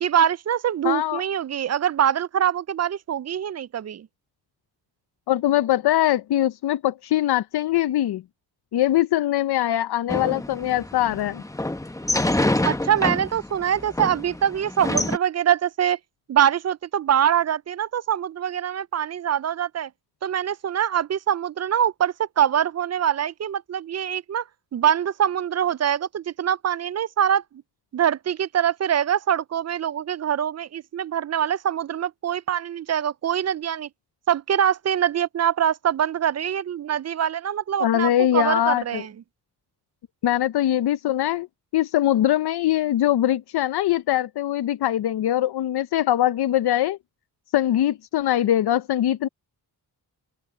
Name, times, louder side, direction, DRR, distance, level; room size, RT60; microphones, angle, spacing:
voice 1, 0.0-4.1 12.6-16.0 16.3-19.9 20.2-24.4 24.7-27.4 27.9-33.9 34.3-39.1, right 9 dB, 45° right, 0.4 m, -24 dB
voice 2, 0.8-1.2 5.3-8.2 8.7-11.4 37.8-39.0 40.2-41.5 41.7-47.0 47.5-49.3, left 13 dB, 80° left, 0.6 m, -22 dB
sound 1, 10.1-15.2, left 1 dB, 10° left, 1.0 m, -27 dB
open air
cardioid pair, 85°, 38 cm